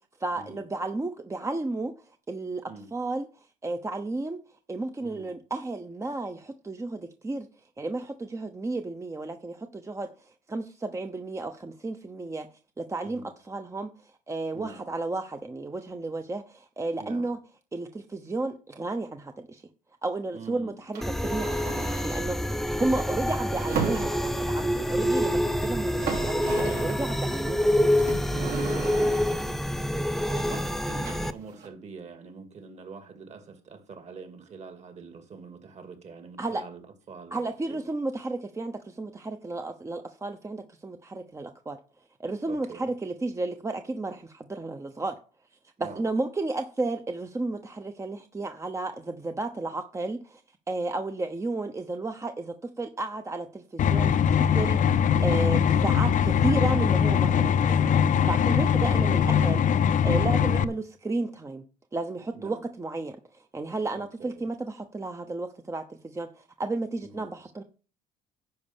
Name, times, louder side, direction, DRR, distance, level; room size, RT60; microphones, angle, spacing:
voice 1, 0.2-1.9 2.3-4.4 4.7-7.5 7.8-12.5 12.8-17.4 17.7-19.6 20.0-27.7 36.4-36.6 37.3-41.8 42.2-45.1 45.8-50.4 50.7-59.6 60.0-61.6 61.9-67.6, right 2 dB, 15° right, 0.9 m, -33 dB
voice 2, 14.5-14.9 17.0-17.3 20.3-20.7 28.3-29.6 30.2-36.8 37.1-37.4 37.7-37.8 42.5-42.9 45.8-46.0 58.5-58.9 62.3-62.6 63.9-64.4 67.1-67.3, right 4 dB, 40° right, 2.6 m, -44 dB
sound 1, 20.9-22.2 23.4-24.5 25.5-25.6 25.8-27.0 28.0-29.5 31.0-31.7, right 6 dB, 65° right, 4.4 m, -35 dB
sound 2, 21.0-31.3, equal, ahead, 0.7 m, -27 dB
sound 3, 53.8-60.6, left 8 dB, 50° left, 0.7 m, -22 dB
10.5 x 5.4 x 7.3 m
cardioid pair, 110°, 17 cm